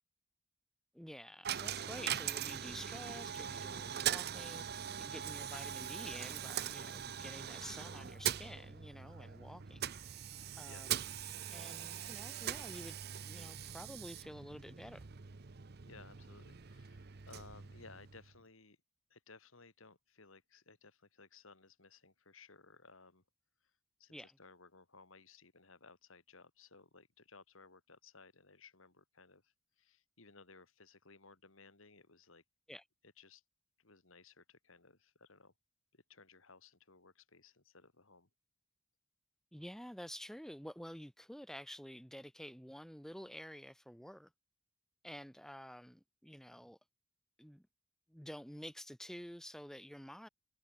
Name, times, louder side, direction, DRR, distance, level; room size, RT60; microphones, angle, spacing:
voice 1, 0.9-4.7 5.0-9.9 10.6-11.0 11.5-13.0 13.2-15.0 24.1-24.4 32.7-32.8 39.5-44.3 45.0-46.8 47.4-47.7 48.1-50.3, equal, ahead, 1.3 m, -50 dB
Coin (dropping), 1.4-18.4, right 9 dB, 50° right, 0.7 m, -42 dB
voice 2, 15.9-18.8 19.1-23.2 23.6-23.7 24.0-32.4 33.0-33.4 33.8-35.5 35.9-38.3, left 4 dB, 75° left, 3.4 m, -60 dB
head